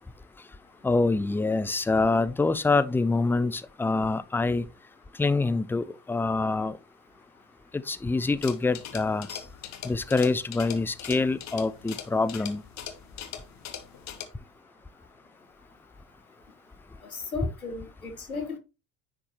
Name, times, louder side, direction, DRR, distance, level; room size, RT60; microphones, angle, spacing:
voice 1, 0.8-4.6 5.2-6.8 7.7-9.4 9.8-12.6, left 3 dB, 5° left, 0.5 m, -25 dB
sound 1, 8.4-14.3, left 9 dB, 40° left, 1.3 m, -41 dB
voice 2, 17.1-18.6, left 4 dB, 90° left, 1.3 m, -35 dB
9.9 x 4.6 x 2.9 m
figure-of-eight pair, 60°, 42 cm